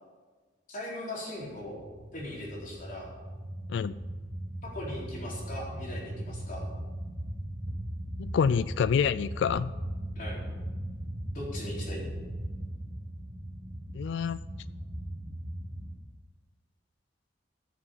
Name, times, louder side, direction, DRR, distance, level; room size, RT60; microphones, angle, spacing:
voice 1, 0.7-1.8 2.1-3.1 4.6-6.6 10.1-10.4 11.3-12.1, left 1 dB, 50° left, -4 dB, 4.0 m, -39 dB
sound 1, 1.5-15.9, right 1 dB, 65° right, 2.8 m, -38 dB
voice 2, 8.2-9.7 13.9-14.4, left 6 dB, 70° left, 17 dB, 0.3 m, -27 dB
15.0 x 7.3 x 5.7 m, 1.3 s
head